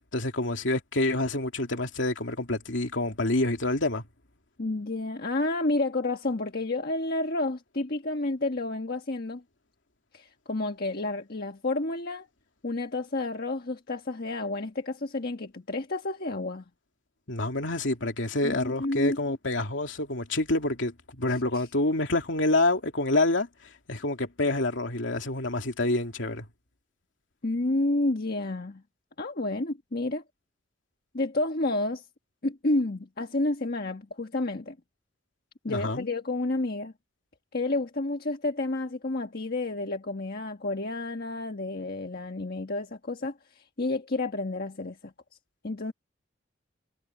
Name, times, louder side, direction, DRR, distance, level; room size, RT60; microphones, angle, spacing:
voice 1, 0.1-4.0 17.3-23.5 23.9-26.4 35.7-36.1, left 2 dB, 70° left, 2.8 m, -27 dB
voice 2, 4.6-9.4 10.1-12.3 12.6-16.6 18.4-19.4 21.3-21.7 27.4-28.8 29.2-30.2 31.1-32.0 32.4-34.8 35.6-36.9 37.5-45.1 45.6-45.9, left 2 dB, 55° left, 1.4 m, -30 dB
head